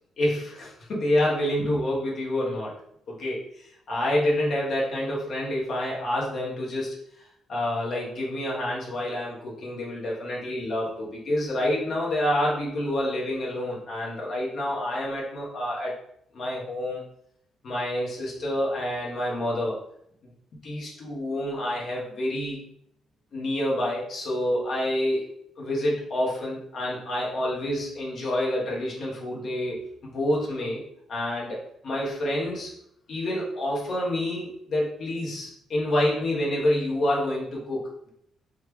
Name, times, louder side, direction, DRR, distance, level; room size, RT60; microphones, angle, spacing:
voice 1, 0.2-2.7 3.1-7.0 7.5-15.9 16.3-17.1 17.6-19.8 20.6-22.6 23.3-25.3 25.6-30.8 31.1-32.7 33.1-38.1, left 1 dB, 60° left, -4 dB, 1.6 m, -28 dB
4.2 x 3.2 x 3.4 m, 0.71 s
cardioid pair, 90°, 0 cm